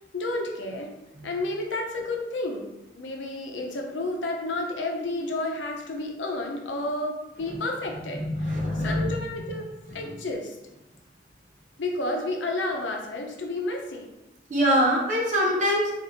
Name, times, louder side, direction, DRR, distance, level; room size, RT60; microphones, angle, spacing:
voice 1, 0.1-0.9 1.2-8.2 8.7-10.6 11.8-14.1, left 2 dB, 85° left, 2 dB, 0.6 m, -31 dB
voice 2, 8.1-9.1 14.5-15.9, equal, 40° right, -3 dB, 0.9 m, -24 dB
2.9 x 2.5 x 4.0 m, 0.99 s
head